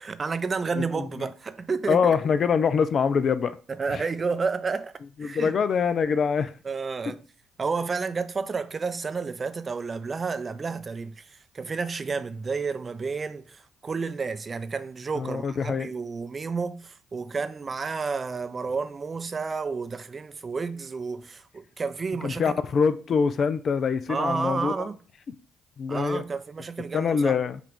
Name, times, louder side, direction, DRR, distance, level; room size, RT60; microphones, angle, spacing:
voice 1, 0.0-2.2 3.7-4.9 5.2-5.6 6.6-7.2 7.6-22.6 24.1-25.0 25.9-27.4, right 4 dB, 40° right, 0.5 m, -31 dB
voice 2, 1.9-3.6 3.9-4.0 5.2-6.5 15.2-15.9 22.2-24.9 25.8-26.2 26.9-27.6, left 6 dB, 55° left, 0.4 m, -24 dB
5.8 x 2.5 x 3.6 m
hypercardioid pair, 50°, 0 cm